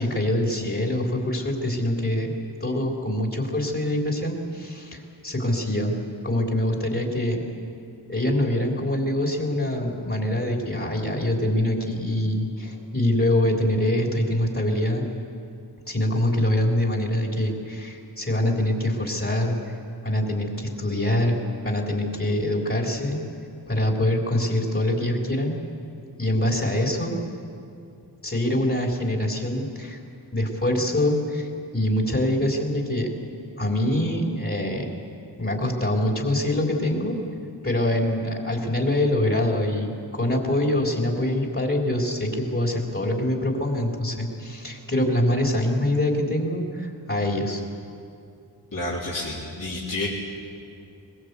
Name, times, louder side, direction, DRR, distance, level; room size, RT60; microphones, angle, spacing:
voice 1, 0.0-2.3 2.6-6.0 6.2-7.4 8.1-15.1 15.9-19.7 20.0-21.4 21.6-23.2 23.7-25.5 26.2-27.2 28.2-30.0 30.3-33.1 33.6-34.9 35.4-37.2 37.6-47.6, left 1 dB, 30° left, 0 dB, 3.7 m, -24 dB
voice 2, 48.7-50.1, left 2 dB, 45° left, -6 dB, 3.6 m, -29 dB
22.5 x 20.5 x 8.2 m, 2.5 s
wide cardioid pair, 65°, 43 cm